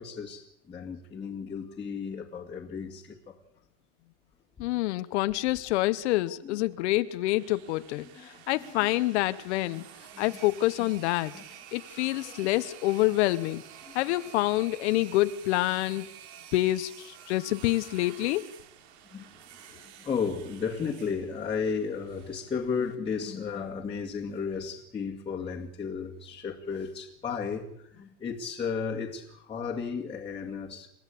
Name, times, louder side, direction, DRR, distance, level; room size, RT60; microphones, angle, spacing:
voice 1, 0.0-3.4 6.4-6.6 8.0-8.9 9.7-9.9 10.1-10.2 11.3-11.4 12.2-12.3 13.9-14.0 19.1-19.3 19.6-30.9, left 6 dB, 15° left, 2.1 m, -34 dB
voice 2, 4.6-8.1 8.5-9.8 10.2-11.3 11.7-13.6 13.9-16.1 16.5-18.4, left 17 dB, 50° left, 1.1 m, -27 dB
sound 1, 7.0-23.0, right 10 dB, 50° right, 3.2 m, -50 dB
29.5 x 14.5 x 8.5 m
supercardioid pair, 150°, 42 cm